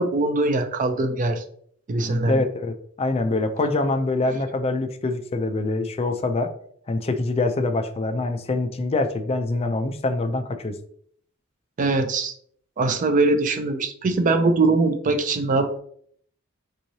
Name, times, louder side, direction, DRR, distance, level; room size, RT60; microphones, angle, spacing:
voice 1, 0.0-1.4 1.9-2.4 11.8-12.3 12.8-15.8, right 3 dB, 40° right, 7 dB, 0.4 m, -22 dB
voice 2, 2.2-6.5 6.9-10.8, left 2 dB, 30° left, 7 dB, 0.4 m, -25 dB
3.6 x 3.0 x 2.7 m, 0.62 s
head